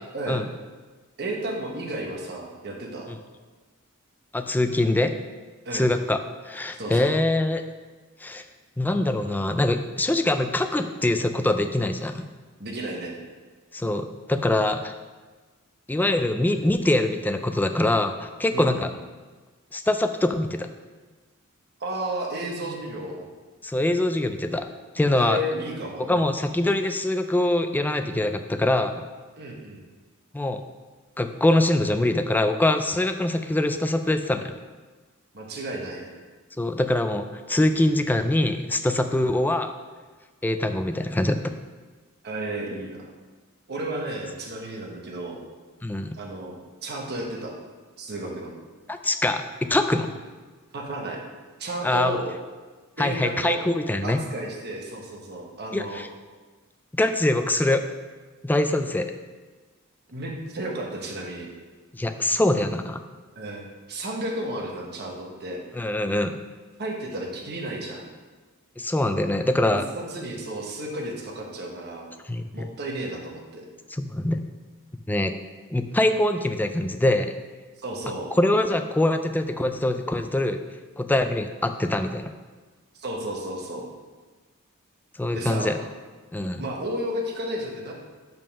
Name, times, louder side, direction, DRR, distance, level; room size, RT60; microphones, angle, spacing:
voice 1, 0.1-0.4 1.2-3.1 5.6-5.9 6.8-7.1 12.6-13.2 18.5-18.9 21.8-23.3 25.1-26.3 29.4-29.8 35.3-36.1 39.2-39.4 42.2-43.1 43.7-45.4 46.2-46.6 46.8-47.5 48.0-48.5 50.7-51.2 51.6-52.3 53.0-53.6 54.0-56.0 60.1-61.5 63.3-65.6 66.8-68.1 69.7-72.1 72.5-73.7 77.8-78.3 83.0-83.9 85.3-85.7 86.6-87.9, right 1 dB, 50° right, -1 dB, 1.3 m, -33 dB
voice 2, 4.3-5.1 5.7-6.2 6.4-7.6 8.2-8.4 8.8-12.2 13.7-14.9 15.9-18.9 19.7-20.7 23.6-24.7 24.9-25.4 26.1-29.0 30.3-30.6 31.2-34.5 36.6-39.7 40.4-41.5 45.8-46.2 48.9-50.2 51.8-52.2 53.0-54.2 55.7-56.1 57.0-57.8 58.4-59.1 61.9-63.0 65.8-66.4 68.8-69.9 72.3-72.7 73.9-74.4 75.1-75.3 75.7-77.4 78.4-80.6 81.0-82.3 85.2-85.7 86.3-86.7, left 1 dB, 10° left, 8 dB, 0.3 m, -23 dB
5.4 x 5.3 x 5.4 m, 1.3 s
head